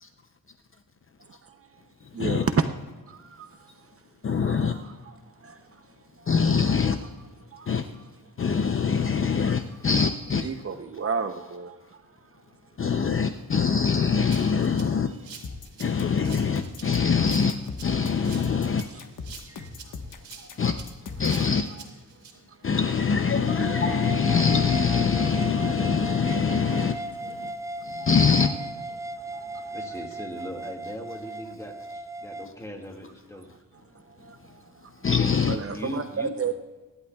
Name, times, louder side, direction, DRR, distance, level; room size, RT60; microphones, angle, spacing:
voice 1, 1.2-1.8 2.1-2.7 3.1-4.0 4.4-7.1 7.5-8.0 9.3-9.5 10.4-12.4 13.1-13.2 14.8-15.3 18.5-19.1 19.4-20.5 21.3-21.4 21.7-21.8 22.1-22.7 25.8-25.9 26.9-27.0 27.3-28.1 28.5-28.6 29.0-30.0 33.3-33.5 33.7-35.1 35.5-36.5, right 5 dB, 40° right, 0.7 m, -35 dB
voice 2, 4.2-4.8 6.3-7.0 7.7-7.9 8.4-10.5 12.8-15.1 15.8-17.6 17.8-18.9 20.6-20.8 21.2-21.7 22.6-27.0 27.2-27.5 27.8-28.5 35.0-35.6, left 6 dB, 40° left, 0.6 m, -23 dB
Rattle (instrument), 14.3-22.3, right 6 dB, 80° right, 2.6 m, -46 dB
sound 1, 15.4-21.4, left 4 dB, 65° left, 1.3 m, -39 dB
sound 2, 23.5-32.5, right 2 dB, 10° right, 0.3 m, -36 dB
voice 3, 27.3-28.1 29.0-33.5 35.6-36.5, equal, 10° left, 2.0 m, -40 dB
24.5 x 11.5 x 2.3 m
wide cardioid pair, 110°, 34 cm